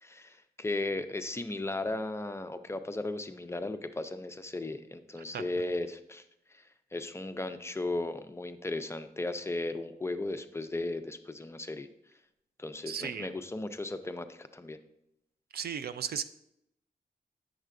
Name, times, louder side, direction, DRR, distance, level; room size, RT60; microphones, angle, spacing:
voice 1, 0.0-6.2 6.5-6.6 6.9-11.9 12.6-14.8, left 2 dB, 15° left, 9 dB, 0.3 m, -36 dB
voice 2, 12.9-13.3 15.5-16.2, right 7 dB, 90° right, 12 dB, 0.4 m, -35 dB
9.0 x 6.4 x 2.5 m, 0.80 s
wide cardioid pair, 160°, 16 cm